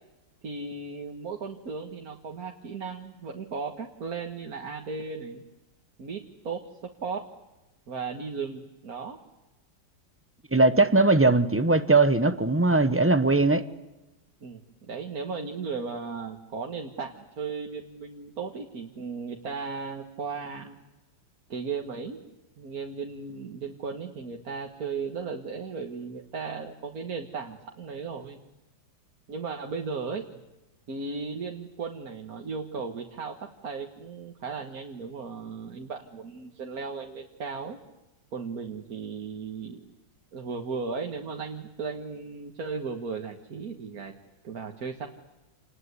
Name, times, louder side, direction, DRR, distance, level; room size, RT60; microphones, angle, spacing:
voice 1, 0.4-5.4 6.0-7.2 7.9-9.2 14.4-14.6 14.9-20.8 21.5-22.2 22.6-28.4 29.3-30.4 30.9-33.4 33.6-37.8 38.3-39.8 40.3-44.1 44.4-45.1, right 5 dB, 50° right, 3 dB, 2.0 m, -36 dB
voice 2, 10.5-13.6, right 2 dB, 15° right, 12 dB, 0.6 m, -20 dB
28.5 x 20.0 x 9.7 m, 1.0 s
omnidirectional pair, 2.1 m